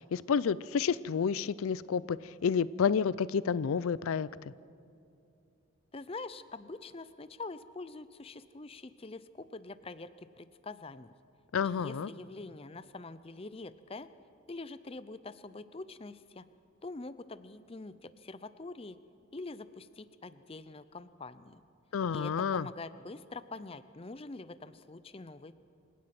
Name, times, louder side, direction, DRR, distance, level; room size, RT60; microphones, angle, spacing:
voice 1, 0.1-4.5 11.5-12.1 21.9-22.7, left 6 dB, 80° left, 19 dB, 0.4 m, -30 dB
voice 2, 5.9-11.1 11.6-14.1 14.5-16.4 16.8-19.0 19.3-21.6 22.1-25.6, left 3 dB, 25° left, 14 dB, 0.5 m, -45 dB
27.5 x 17.0 x 6.0 m, 2.6 s
head